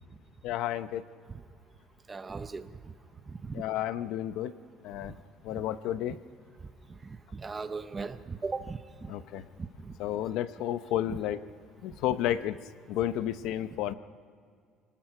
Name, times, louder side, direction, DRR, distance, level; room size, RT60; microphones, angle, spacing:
voice 1, 0.4-1.0 3.5-4.5 4.8-5.1 5.4-6.2 9.1-9.4 10.0-11.4 11.8-12.6 12.9-13.9, left 12 dB, 60° left, 13 dB, 0.7 m, -31 dB
voice 2, 2.1-2.7 3.3-3.6 7.0-9.1 9.6-9.9 11.1-11.2, right 4 dB, 15° right, 11 dB, 0.6 m, -38 dB
27.0 x 19.0 x 5.9 m, 2.1 s
cardioid pair, 180°, 0 cm